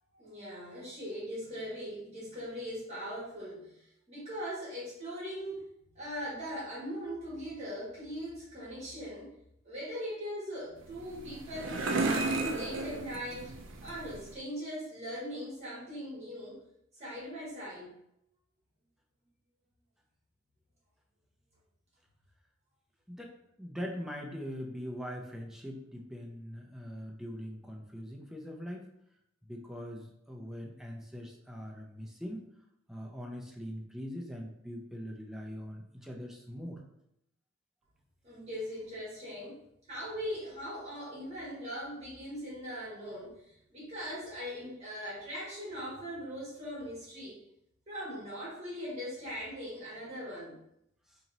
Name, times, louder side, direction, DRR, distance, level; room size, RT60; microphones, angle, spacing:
voice 1, 0.1-5.6 5.9-9.3 9.6-13.5 13.8-16.6 17.0-17.9 38.2-39.6 39.9-47.4 47.9-50.6, equal, 35° right, -7 dB, 1.3 m, -40 dB
sound 1, 10.8-14.4, right 3 dB, 70° right, 0.5 m, -34 dB
voice 2, 23.1-28.9 29.4-32.4 32.9-36.8 51.1-51.2, equal, ahead, 0 dB, 0.4 m, -42 dB
2.9 x 2.7 x 3.9 m, 0.77 s
head